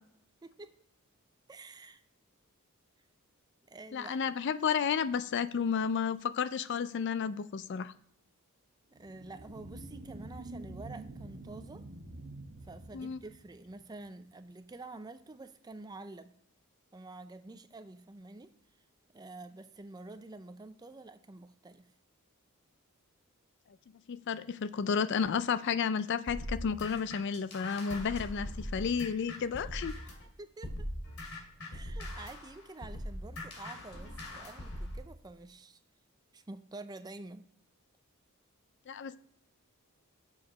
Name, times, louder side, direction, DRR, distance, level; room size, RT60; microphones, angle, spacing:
voice 1, 0.4-0.7 1.5-2.0 3.7-4.2 8.9-11.9 12.6-16.3 16.9-18.5 19.1-21.9 30.4-30.9 31.7-35.8 36.3-37.5, right 2 dB, 20° right, 11 dB, 0.4 m, -48 dB
voice 2, 3.9-7.9 12.9-13.2 24.1-29.9 38.9-39.2, left 6 dB, 55° left, 15 dB, 0.4 m, -32 dB
sound 1, 9.0-13.9, right 2 dB, 70° right, 1.0 m, -47 dB
sound 2, 26.3-30.2 30.6-35.0, left 1 dB, 90° left, 2.4 m, -41 dB
7.2 x 4.9 x 6.2 m, 0.72 s
head